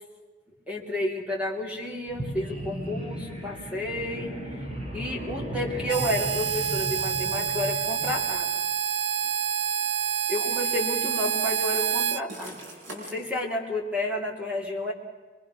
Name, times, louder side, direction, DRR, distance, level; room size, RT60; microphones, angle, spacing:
voice 1, 0.7-4.4 4.9-8.5 10.3-12.6 12.9-14.9, left 1 dB, 5° right, 0 dB, 2.6 m, -31 dB
sound 1, 2.1-8.3, right 1 dB, 30° right, 3.0 m, -36 dB
Harmonica, 5.9-12.2, right 8 dB, 65° right, 0.7 m, -27 dB
sound 2, 9.2-9.4 10.7-11.4 12.3-13.3, right 1 dB, 85° right, 5.4 m, -42 dB
24.5 x 23.0 x 6.1 m, 1.4 s
head